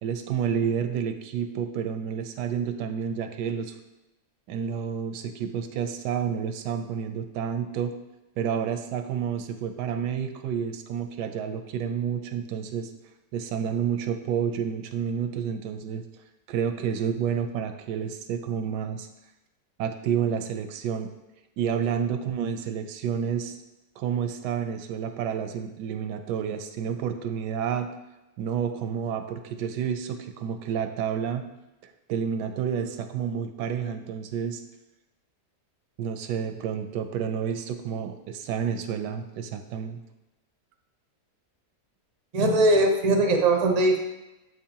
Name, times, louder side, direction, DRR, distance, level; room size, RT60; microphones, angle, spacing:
voice 1, 0.0-3.7 4.5-7.9 8.4-12.9 13.3-16.0 16.5-19.1 19.8-21.1 21.6-23.6 24.0-27.9 28.4-31.5 31.8-34.6 36.0-40.0, right 7 dB, 85° right, 7 dB, 1.2 m, -30 dB
voice 2, 42.3-44.0, right 2 dB, 50° right, 2 dB, 0.4 m, -20 dB
7.4 x 4.7 x 2.8 m, 0.99 s
omnidirectional pair, 1.8 m